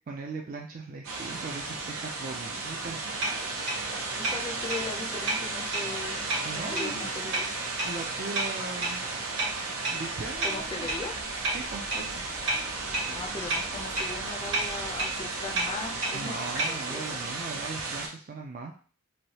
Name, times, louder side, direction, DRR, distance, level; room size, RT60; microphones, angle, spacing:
voice 1, 0.1-3.0 6.4-7.1 7.8-9.0 9.9-10.9 11.5-12.2 16.1-18.7, right 3 dB, 40° right, 1 dB, 0.4 m, -39 dB
sound 1, 1.0-18.1, right 3 dB, 90° right, 0.6 m, -34 dB
sound 2, 3.0-16.8, right 2 dB, 60° right, 1.1 m, -34 dB
voice 2, 4.2-6.2 6.5-7.5 10.4-11.2 13.1-17.3, left 3 dB, 25° left, 2 dB, 0.5 m, -39 dB
sound 3, 10.1-16.0, equal, 80° left, 1.2 m, -50 dB
3.2 x 2.6 x 2.8 m, 0.41 s
head